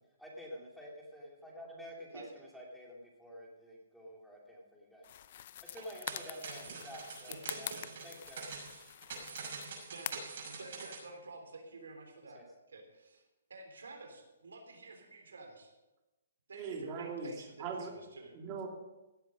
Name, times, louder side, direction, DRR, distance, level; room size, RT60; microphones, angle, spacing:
voice 1, 0.2-5.1 5.6-7.7 8.0-8.5 12.3-12.4, equal, ahead, -3 dB, 2.7 m, -49 dB
sound 1, 5.0-10.4, left 11 dB, 50° left, 0.5 m, -46 dB
sound 2, 5.6-11.0, right 4 dB, 60° right, 6.1 m, -45 dB
voice 2, 7.3-7.8 9.9-15.7 16.5-18.3, right 3 dB, 90° right, 4 dB, 3.5 m, -50 dB
voice 3, 16.5-17.9 18.3-18.7, right 5 dB, 30° right, 1 dB, 2.8 m, -40 dB
17.0 x 7.9 x 6.2 m, 1.0 s
hypercardioid pair, 155°, 0 cm